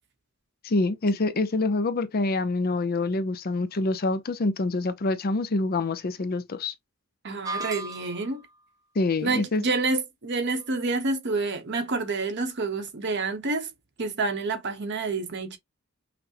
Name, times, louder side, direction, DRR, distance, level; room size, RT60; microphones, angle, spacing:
voice 1, 0.6-6.7 9.0-9.6, left 2 dB, 45° left, 0.5 m, -26 dB
voice 2, 7.2-8.4 9.2-13.7 14.0-15.6, right 3 dB, 55° right, 0.9 m, -28 dB
sound 1, 7.4-8.4, right 1 dB, 15° right, 0.3 m, -35 dB
5.8 x 2.1 x 2.8 m
head